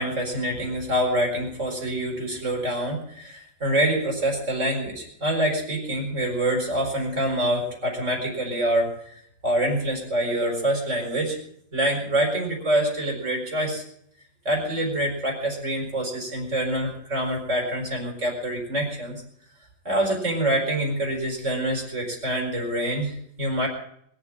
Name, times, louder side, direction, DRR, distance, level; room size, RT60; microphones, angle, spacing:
voice 1, 0.0-11.4 11.7-13.8 14.4-19.2 19.8-23.7, right 1 dB, 40° right, 0 dB, 5.0 m, -26 dB
21.5 x 7.4 x 8.6 m, 0.70 s
omnidirectional pair, 1.9 m